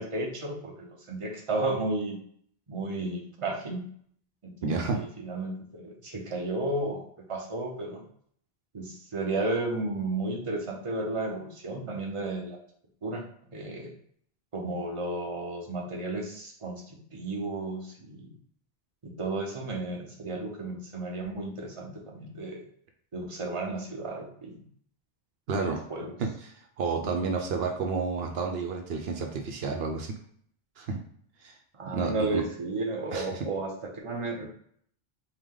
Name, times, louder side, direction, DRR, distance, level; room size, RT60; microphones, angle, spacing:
voice 1, 0.0-2.2 2.7-3.8 4.4-7.0 7.3-8.0 8.7-12.6 13.0-13.3 13.5-13.9 14.5-18.3 19.0-22.6 23.1-24.7 25.5-26.1 27.2-27.3 31.7-34.4, right 2 dB, 35° right, 0 dB, 0.8 m, -33 dB
voice 2, 4.6-5.0 25.5-25.8 26.2-30.1 30.8-31.0 31.4-31.5 31.9-32.4 33.1-33.3, right 4 dB, 75° right, 3 dB, 0.8 m, -30 dB
4.7 x 2.2 x 3.7 m, 0.63 s
omnidirectional pair, 1.0 m